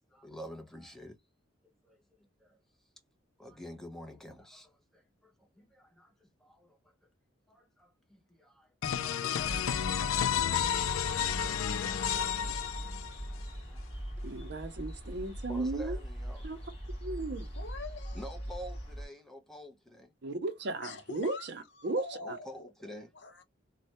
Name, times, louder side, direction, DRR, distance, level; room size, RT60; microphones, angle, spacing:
voice 1, 0.1-1.2 1.8-2.6 3.4-6.9 7.5-9.4 11.5-13.9 15.5-16.5 18.1-20.1 22.2-23.1, equal, ahead, 0.6 m, -49 dB
sound 1, 8.8-13.4, left 9 dB, 90° left, 0.4 m, -31 dB
sound 2, 9.4-19.1, equal, 30° left, 1.3 m, -41 dB
voice 2, 14.2-16.0 16.4-16.6 17.0-17.5 20.2-21.4 21.8-22.4, right 2 dB, 55° right, 0.6 m, -35 dB
voice 3, 17.6-18.7 20.8-21.5 21.8-23.4, left 3 dB, 60° left, 0.7 m, -45 dB
3.2 x 2.1 x 2.8 m
head